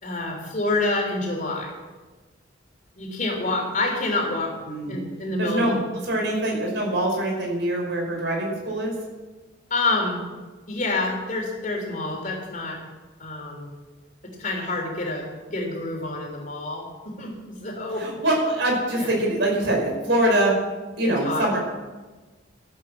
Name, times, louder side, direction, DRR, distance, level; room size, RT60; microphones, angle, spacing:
voice 1, 0.0-1.7 3.0-4.5 4.9-5.8 9.7-10.2 10.7-12.8 13.2-13.7 14.2-18.1 18.9-19.1 21.0-21.5, left 2 dB, 40° left, 1 dB, 3.5 m, -27 dB
voice 2, 5.4-5.8 6.1-8.9 18.0-20.5 21.0-21.6, right 1 dB, 65° right, 0 dB, 5.1 m, -23 dB
14.0 x 8.9 x 7.2 m, 1.3 s
head